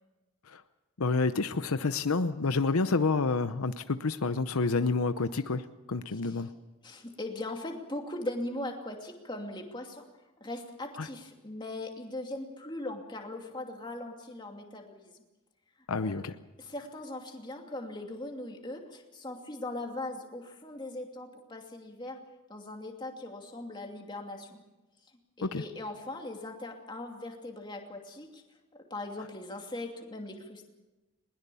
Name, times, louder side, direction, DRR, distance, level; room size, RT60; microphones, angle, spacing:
voice 1, 1.0-6.5 11.0-11.1 15.9-16.3 25.4-25.6, left 3 dB, 80° left, 11 dB, 0.8 m, -29 dB
voice 2, 6.8-10.1 10.4-15.2 16.0-16.2 16.6-22.2 22.5-24.6 25.4-28.4 28.7-30.7, left 2 dB, 20° left, 2 dB, 2.6 m, -40 dB
21.0 x 21.0 x 7.0 m, 1.1 s
head